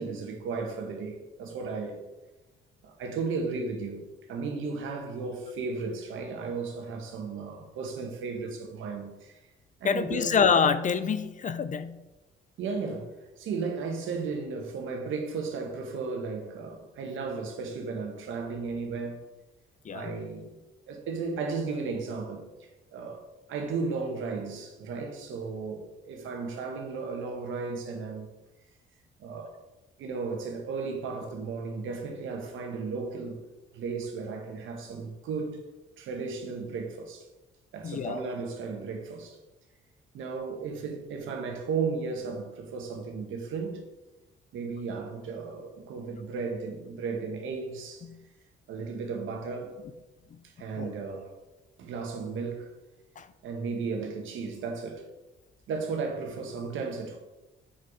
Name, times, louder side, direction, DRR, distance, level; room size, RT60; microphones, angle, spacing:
voice 1, 0.0-2.0 2.8-4.0 4.3-9.4 9.8-10.4 12.6-19.2 19.9-20.5 20.9-22.5 22.9-23.2 23.5-28.3 29.2-29.5 30.0-33.4 33.7-35.6 36.0-37.3 37.7-39.4 40.1-43.8 44.5-48.1 48.7-49.8 50.6-51.3 51.8-52.7 53.4-55.0 55.7-57.2, right 4 dB, 80° right, 1.4 m, -34 dB
voice 2, 9.8-12.0 19.9-20.1 37.8-38.2 48.1-48.2 50.8-50.9 53.2-53.3, left 6 dB, 40° left, 0.5 m, -26 dB
5.8 x 5.0 x 4.9 m
cardioid pair, 90°, 20 cm